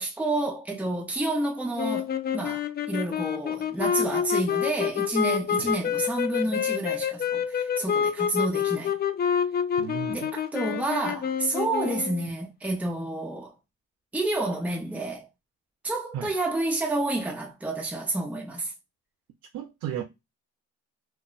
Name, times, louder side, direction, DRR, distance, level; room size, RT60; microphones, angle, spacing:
voice 1, 0.0-9.0 10.1-13.5 14.1-15.3 15.8-18.7, right 2 dB, 5° right, 0.7 m, -29 dB
sound 1, 1.8-12.3, left 8 dB, 35° left, 0.4 m, -28 dB
voice 2, 9.8-10.2 16.1-16.3 19.5-20.0, right 9 dB, 75° right, 0.5 m, -34 dB
2.2 x 2.1 x 3.8 m
cardioid pair, 90°, 30 cm